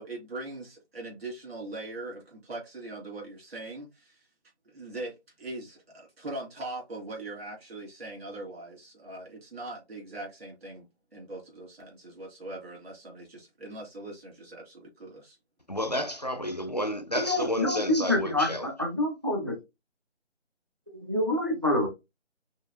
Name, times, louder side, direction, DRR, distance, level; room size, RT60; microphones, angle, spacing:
voice 1, 0.0-4.3 4.6-10.9 11.1-15.4, right 2 dB, 60° right, 2.6 m, -41 dB
voice 2, 15.7-18.7, equal, 35° left, 0.4 m, -31 dB
voice 3, 17.3-19.6 20.9-21.9, left 1 dB, 20° right, 0.7 m, -27 dB
5.5 x 2.6 x 2.7 m
figure-of-eight pair, 170°, 36 cm